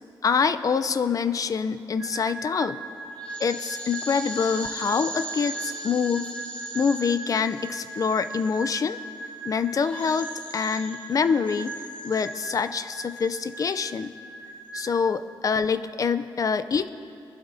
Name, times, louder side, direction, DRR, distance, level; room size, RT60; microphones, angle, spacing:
voice 1, 0.2-2.8 3.4-6.3 6.7-9.0 9.4-10.3 10.5-11.8 12.0-14.1 14.7-16.9, left 6 dB, 40° left, 12 dB, 0.4 m, -25 dB
sound 1, 2.0-14.9, right 2 dB, 15° left, 3.6 m, -37 dB
22.5 x 11.5 x 2.7 m, 2.6 s
wide cardioid pair, 160°, 9 cm